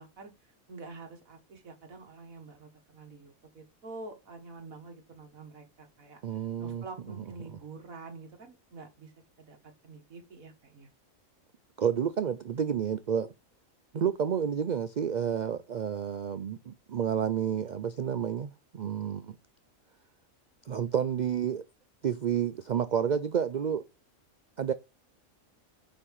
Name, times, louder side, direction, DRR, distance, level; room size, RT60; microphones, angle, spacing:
voice 1, 0.0-6.2 6.6-9.1 9.4-9.6 9.8-10.9, right 3 dB, 90° right, 2.1 m, -47 dB
voice 2, 6.2-6.8 7.2-7.3 11.8-13.3 13.9-19.4 20.7-21.6 22.0-23.9 24.6-24.7, right 8 dB, 70° right, 0.4 m, -30 dB
5.5 x 5.2 x 6.4 m
omnidirectional pair, 1.4 m